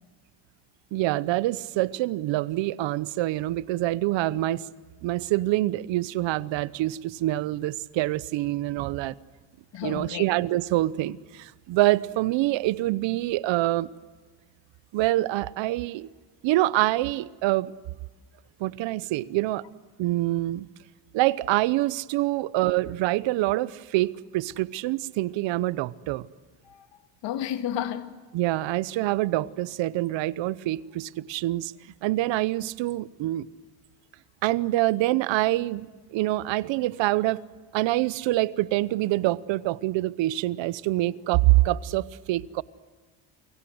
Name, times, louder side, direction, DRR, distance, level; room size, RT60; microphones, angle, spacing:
voice 1, 0.9-4.6 5.0-9.2 9.8-13.9 14.9-16.1 16.4-17.7 18.6-19.6 20.0-20.7 21.1-26.2 28.3-31.7 32.0-33.5 34.4-37.4 37.7-42.6, right 17 dB, 80° right, 1.0 m, -25 dB
voice 2, 9.7-10.3 22.5-22.7 26.6-28.1, left 11 dB, 75° left, 2.3 m, -32 dB
29.5 x 23.0 x 7.9 m
cardioid pair, 110°, 44 cm